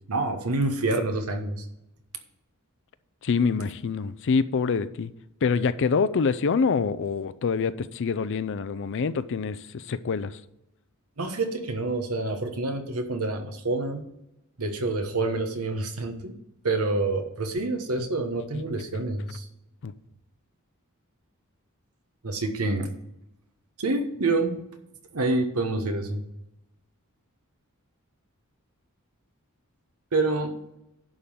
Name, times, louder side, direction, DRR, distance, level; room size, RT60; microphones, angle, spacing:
voice 1, 0.1-1.6 11.2-14.0 14.6-16.4 16.6-19.5 22.2-22.9 23.8-24.6 25.1-26.2 30.1-30.5, right 2 dB, 85° right, 1.2 m, -27 dB
voice 2, 3.2-5.1 5.4-10.4 19.8-19.9, left 5 dB, 60° left, 0.5 m, -26 dB
11.0 x 3.8 x 6.8 m
head